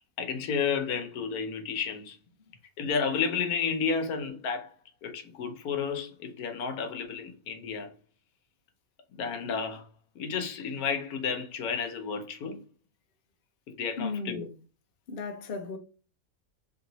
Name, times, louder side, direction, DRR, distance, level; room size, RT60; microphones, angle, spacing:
voice 1, 0.2-2.2 2.8-4.7 5.0-7.9 9.1-9.8 10.1-12.6 13.8-14.5, left 6 dB, 80° left, 1.3 m, -31 dB
voice 2, 14.0-14.5 15.1-15.8, left 4 dB, 50° left, 0.7 m, -35 dB
3.1 x 2.8 x 3.9 m
omnidirectional pair, 1.6 m